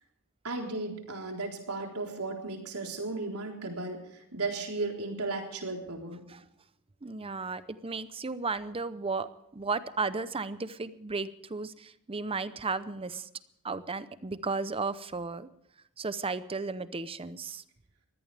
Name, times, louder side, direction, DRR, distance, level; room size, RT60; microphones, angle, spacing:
voice 1, 0.4-6.2, right 3 dB, 80° right, 1 dB, 3.9 m, -35 dB
voice 2, 7.0-13.3 13.6-15.5 16.0-17.6, right 4 dB, 25° right, 14 dB, 0.7 m, -34 dB
22.5 x 16.5 x 3.4 m, 0.76 s
head